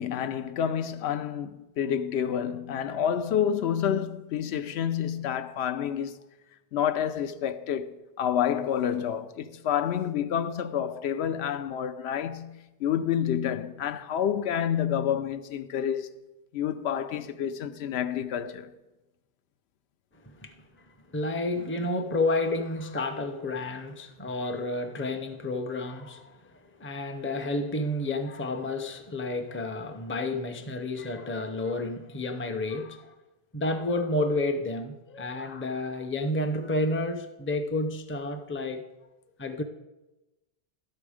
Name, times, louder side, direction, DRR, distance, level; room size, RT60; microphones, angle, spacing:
voice 1, 0.0-6.2 6.7-16.1 16.5-18.7, left 9 dB, 85° left, 0.8 m, -29 dB
voice 2, 20.1-33.1 33.5-38.9 39.4-39.6, left 2 dB, 15° left, 0.5 m, -31 dB
12.0 x 6.6 x 4.9 m
omnidirectional pair, 1.1 m